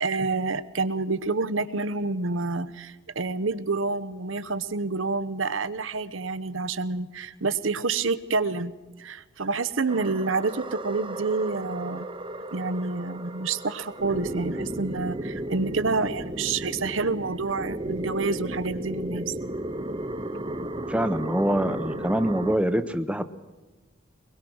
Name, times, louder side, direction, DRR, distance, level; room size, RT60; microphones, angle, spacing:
voice 1, 0.0-8.7 9.0-12.1 12.5-19.3, right 3 dB, 75° right, 14 dB, 1.0 m, -28 dB
sound 1, 9.9-22.6, right 1 dB, 25° right, 1.0 m, -34 dB
voice 2, 20.9-23.3, right 1 dB, 5° right, 10 dB, 0.9 m, -25 dB
24.0 x 21.0 x 6.3 m, 1.3 s
head